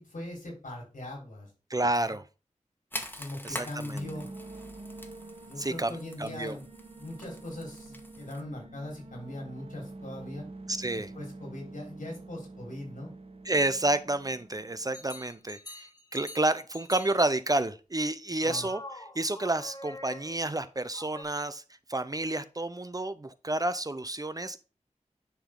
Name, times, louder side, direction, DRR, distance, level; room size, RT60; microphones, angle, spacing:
voice 1, 0.0-1.5 2.0-2.1 3.2-4.3 5.4-6.7 7.0-10.4 10.9-13.1 18.4-18.7, left 1 dB, 85° left, -1 dB, 4.0 m, -40 dB
voice 2, 1.7-2.2 3.4-4.0 5.6-6.6 10.7-11.1 13.5-18.8 19.1-21.6 21.9-24.6, right 2 dB, 25° right, 13 dB, 0.6 m, -30 dB
sound 1, 2.9-8.4, left 1 dB, 15° left, 1.4 m, -44 dB
sound 2, 4.0-15.5, right 2 dB, 45° right, 0.9 m, -47 dB
sound 3, 14.9-17.3 18.4-20.5 20.9-21.2, left 2 dB, 30° left, 1.6 m, -46 dB
10.0 x 3.7 x 3.7 m, 0.33 s
wide cardioid pair, 50°, 13 cm